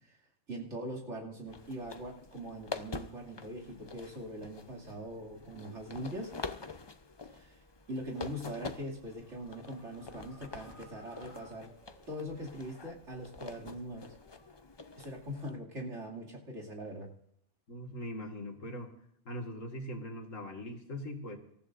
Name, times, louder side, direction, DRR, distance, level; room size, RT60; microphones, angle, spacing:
voice 1, 0.5-6.3 7.3-7.6 7.9-11.7 12.1-14.1 15.0-17.1, equal, 55° right, 0 dB, 2.9 m, -42 dB
sound 1, 1.5-15.5, left 4 dB, 30° left, 0.5 m, -46 dB
sound 2, 8.9-12.6, right 1 dB, 25° right, 4.2 m, -58 dB
voice 2, 17.7-18.9 19.3-21.4, equal, 65° left, 3 dB, 2.2 m, -41 dB
26.0 x 14.0 x 2.6 m, 0.71 s
omnidirectional pair, 1.4 m